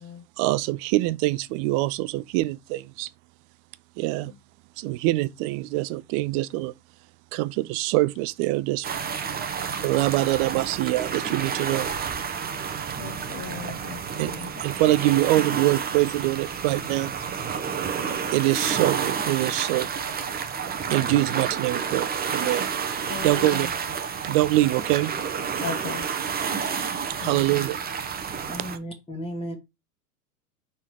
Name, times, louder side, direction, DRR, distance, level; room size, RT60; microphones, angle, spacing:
voice 1, 0.4-3.1 4.0-4.3 4.8-6.7 7.3-8.9 9.8-11.9 14.2-14.3 14.6-17.1 18.3-19.9 20.9-22.7 23.2-23.7 24.2-25.1 27.2-27.8, right 17 dB, 40° right, 0.4 m, -24 dB
sound 1, 8.8-28.8, right 6 dB, 20° right, 1.0 m, -30 dB
voice 2, 13.0-14.6 23.1-23.7 25.6-26.1 27.2-27.6, left 7 dB, 30° left, 1.2 m, -37 dB
voice 3, 28.4-29.5, equal, 10° left, 1.8 m, -34 dB
5.5 x 3.8 x 4.8 m
hypercardioid pair, 100°, 45 cm